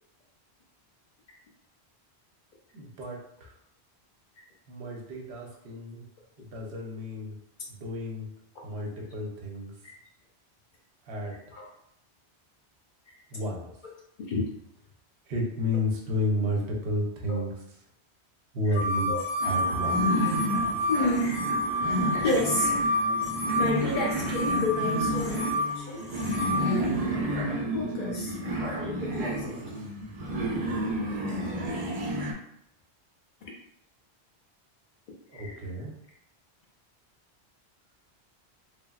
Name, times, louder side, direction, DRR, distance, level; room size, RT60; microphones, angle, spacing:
voice 1, 2.7-3.2 4.7-6.0 6.4-7.4 7.7-8.3 8.6-9.7 11.1-11.3 13.3-13.6 15.3-17.5 18.5-20.1 35.3-35.9, left 1 dB, 80° right, -1 dB, 0.9 m, -31 dB
voice 2, 14.2-14.5 17.3-17.4 18.6-18.8 19.1-19.2 20.9-21.5 22.2-22.9 23.6-26.0 27.0-27.4 27.7-28.4 28.7-29.6 35.3-35.6, left 2 dB, 55° left, -2 dB, 0.6 m, -31 dB
sound 1, 18.7-26.6, equal, 90° left, 1.4 m, -29 dB
sound 2, 19.4-32.3, right 1 dB, 55° right, 0.4 m, -31 dB
3.2 x 2.0 x 2.3 m, 0.76 s
omnidirectional pair, 1.1 m